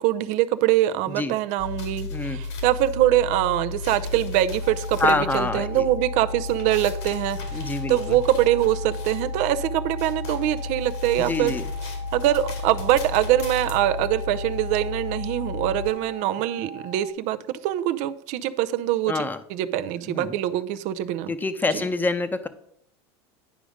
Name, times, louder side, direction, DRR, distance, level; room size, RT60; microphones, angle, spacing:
voice 1, 0.0-11.5 12.1-17.4 17.6-19.2 19.5-21.3 21.7-21.8, right 13 dB, 60° right, 0.6 m, -23 dB
sound 1, 1.6-15.9, left 4 dB, 80° left, 2.2 m, -33 dB
sound 2, 4.6-17.1, left 1 dB, 40° left, 0.9 m, -42 dB
voice 2, 5.0-5.9 7.5-8.2 11.2-11.7 19.1-19.4 20.1-20.4 21.3-22.5, left 3 dB, 15° left, 0.8 m, -26 dB
10.0 x 5.1 x 5.0 m
supercardioid pair, 105°, 14 cm